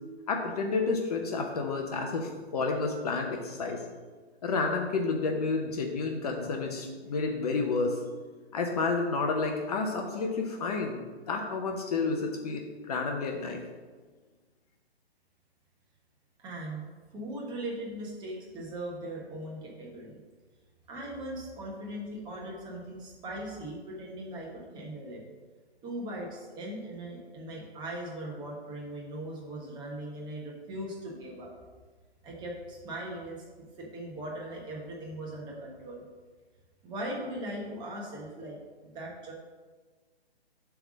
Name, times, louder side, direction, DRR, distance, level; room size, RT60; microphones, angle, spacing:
voice 1, 0.3-3.8 4.4-8.0 8.5-13.6, left 4 dB, 35° left, 3 dB, 0.7 m, -30 dB
voice 2, 16.4-16.8 17.1-20.2 20.9-25.2 25.8-31.5 32.2-33.4 33.8-36.0 36.8-38.6 38.8-39.3, right 1 dB, 15° right, -3 dB, 1.3 m, -39 dB
7.9 x 3.5 x 6.2 m, 1.4 s
hypercardioid pair, 145°, 32 cm